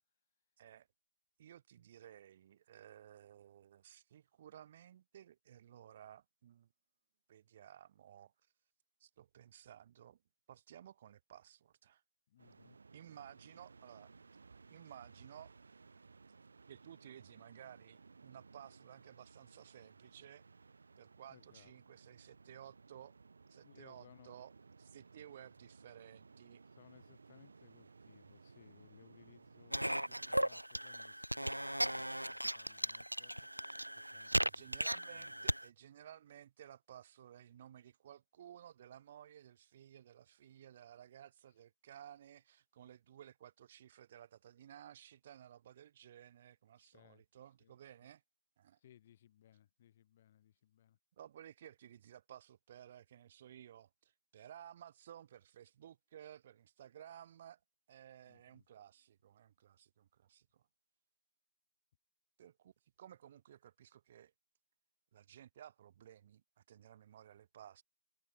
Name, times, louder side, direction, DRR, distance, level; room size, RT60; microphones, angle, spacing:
voice 1, 1.4-6.7 7.3-8.3 9.0-10.2 10.5-12.0 12.9-14.3 14.7-15.6 16.7-20.4 21.0-23.1 23.5-24.5 24.8-26.6 34.4-48.2 48.6-48.8 51.2-57.6 57.9-60.6 62.4-64.3 65.1-67.8, right 10 dB, 15° right, 2.2 m, -56 dB
voice 2, 12.3-12.8 21.3-21.7 23.6-24.4 26.7-33.5 33.9-35.5 46.8-47.2 47.6-48.1 48.8-51.0 58.3-58.7, left 11 dB, 15° left, 3.9 m, -64 dB
sound 1, 12.4-30.3, right 4 dB, 30° right, 2.2 m, -60 dB
sound 2, 29.7-35.6, right 1 dB, 80° right, 2.2 m, -37 dB
figure-of-eight pair, 165°, 0 cm